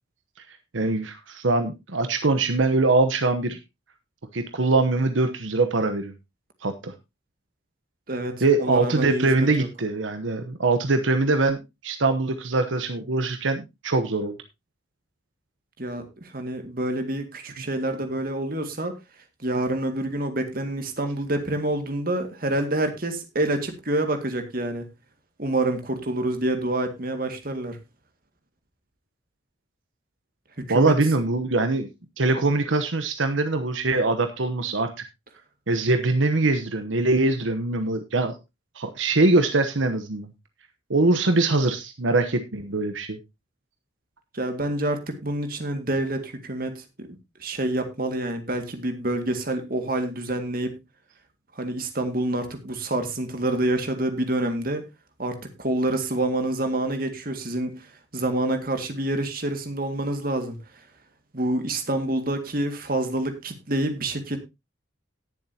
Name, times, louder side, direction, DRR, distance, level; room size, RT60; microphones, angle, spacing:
voice 1, 0.7-3.6 4.3-6.1 6.6-6.9 8.4-14.4 30.7-31.9 32.2-34.9 35.7-38.3 38.7-40.3 40.9-43.2, right 3 dB, 80° right, 8 dB, 1.0 m, -23 dB
voice 2, 8.1-9.7 15.8-18.9 19.4-24.9 25.4-27.8 30.6-31.0 44.3-47.1 47.4-50.8 51.6-54.8 55.2-57.9 58.1-60.6 61.3-64.4, right 1 dB, 50° right, 7 dB, 2.1 m, -27 dB
18.5 x 7.2 x 2.9 m, 0.23 s
head